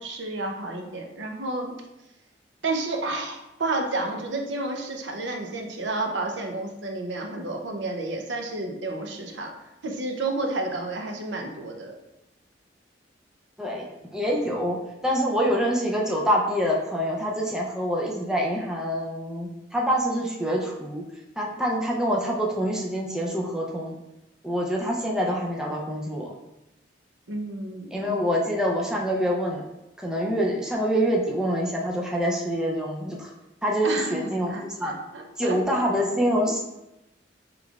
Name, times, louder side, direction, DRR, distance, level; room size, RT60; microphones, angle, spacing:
voice 1, 0.0-1.8 2.6-9.5 9.8-12.0 27.3-28.3 33.8-36.2 36.5-36.6, right 2 dB, 70° right, 2 dB, 0.6 m, -31 dB
voice 2, 13.6-21.0 21.4-24.0 24.4-26.3 27.9-29.6 30.0-33.3 33.6-35.0 35.4-36.6, equal, 5° right, -3 dB, 0.5 m, -26 dB
5.1 x 3.2 x 2.4 m, 0.92 s
head